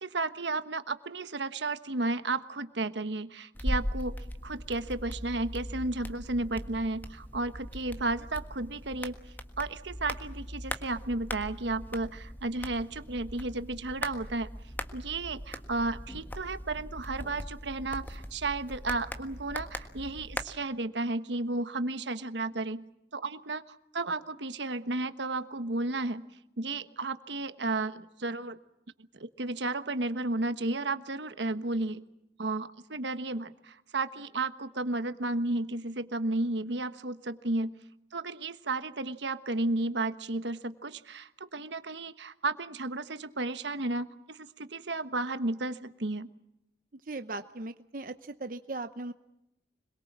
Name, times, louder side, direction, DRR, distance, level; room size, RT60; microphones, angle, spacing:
voice 1, 0.0-4.1 4.4-9.1 9.6-14.5 14.9-22.8 23.1-23.6 23.9-26.3 26.6-28.6 29.2-32.0 32.4-37.7 38.1-46.3, right 2 dB, 80° right, 11 dB, 1.3 m, -33 dB
sound 1, 3.5-20.4, equal, 10° left, 1.5 m, -40 dB
voice 2, 47.1-49.1, right 2 dB, 50° right, 9 dB, 0.8 m, -38 dB
26.0 x 22.0 x 7.4 m, 0.86 s
head